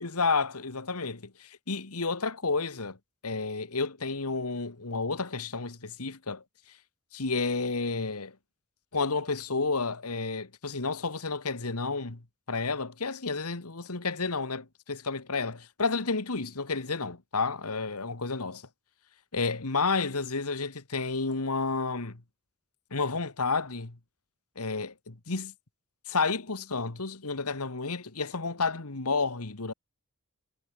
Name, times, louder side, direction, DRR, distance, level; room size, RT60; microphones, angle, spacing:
voice 1, 0.0-3.0 3.2-6.4 7.1-8.3 8.9-12.2 12.5-18.6 19.3-22.2 22.9-23.9 24.6-25.5 26.1-29.7, left 4 dB, 90° left, 1.8 m, -31 dB
head